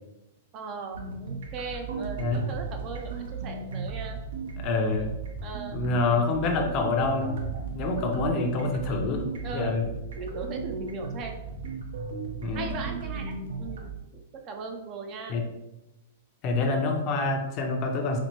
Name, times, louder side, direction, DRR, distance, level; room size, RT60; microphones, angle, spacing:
voice 1, 0.5-4.2 5.4-5.8 9.4-9.8 10.2-11.4 12.5-13.9 14.5-15.4 16.6-16.7, right 4 dB, 35° right, 4 dB, 0.4 m, -38 dB
sound 1, 0.9-13.9, right 4 dB, 85° right, 0.7 m, -35 dB
voice 2, 4.6-5.1 5.7-7.4 7.7-9.2 9.5-9.9 12.4-12.7 15.3-15.4 16.4-18.2, left 3 dB, 35° left, 3 dB, 0.6 m, -26 dB
4.2 x 2.1 x 3.0 m, 0.93 s
hypercardioid pair, 145°, 0 cm